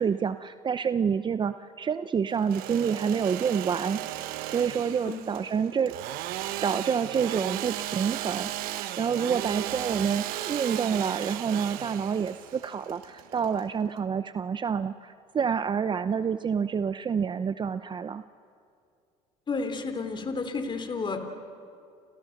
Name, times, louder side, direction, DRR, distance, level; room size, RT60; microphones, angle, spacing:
voice 1, 0.0-4.0 4.4-5.9 6.6-18.2, right 6 dB, 30° right, 11 dB, 0.7 m, -28 dB
Engine / Sawing, 2.3-14.0, right 14 dB, 70° right, 1.2 m, -35 dB
voice 2, 19.5-21.3, left 4 dB, 30° left, 7 dB, 3.4 m, -31 dB
30.0 x 28.5 x 6.6 m, 2.4 s
supercardioid pair, 90°, 15 cm